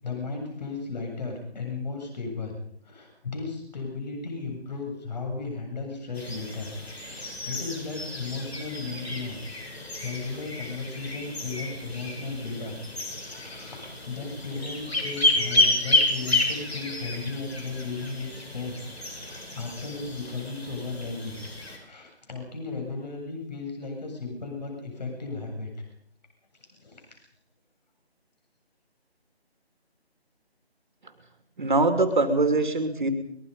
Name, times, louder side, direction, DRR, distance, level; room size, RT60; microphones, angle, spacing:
voice 1, 0.0-2.5 2.8-6.7 7.0-9.7 10.0-12.8 13.2-18.8 19.1-21.4 21.8-25.7 26.7-27.0, left 4 dB, 40° left, 3 dB, 7.7 m, -35 dB
sound 1, 6.1-21.8, left 2 dB, 70° left, 7.9 m, -30 dB
voice 2, 31.6-33.1, right 3 dB, 45° right, 6 dB, 3.0 m, -23 dB
23.0 x 21.5 x 5.5 m, 0.71 s
figure-of-eight pair, 165°, 32 cm